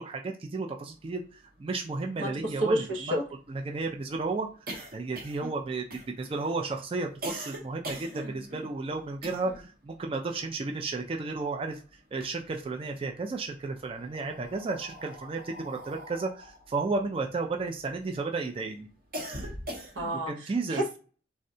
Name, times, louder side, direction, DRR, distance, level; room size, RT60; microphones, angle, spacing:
voice 1, 0.0-3.2 3.5-5.9 6.2-11.8 12.1-18.9 20.3-20.8, right 3 dB, 30° right, 3 dB, 0.3 m, -33 dB
sound 1, 1.5-1.6 1.9-2.0 2.3-9.8 10.0-11.6 11.9-12.9 13.6-18.1 18.5-20.3, right 1 dB, 50° right, 0.7 m, -42 dB
voice 2, 2.2-3.2 20.0-20.3 20.7-21.0, right 1 dB, 85° right, 2 dB, 0.7 m, -29 dB
3.6 x 2.1 x 2.6 m, 0.37 s
head